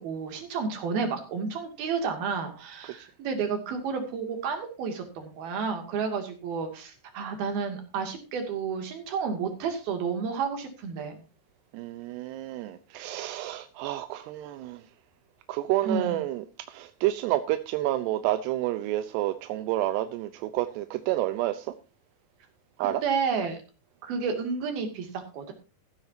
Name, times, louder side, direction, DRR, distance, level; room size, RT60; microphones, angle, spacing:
voice 1, 0.0-11.2 15.8-16.2 23.0-23.6 24.0-25.5, right 5 dB, 65° right, 4.3 m, -31 dB
voice 2, 11.7-14.8 15.5-21.7 22.8-23.0, right 14 dB, 85° right, 2.9 m, -29 dB
14.5 x 12.5 x 2.8 m
omnidirectional pair, 4.8 m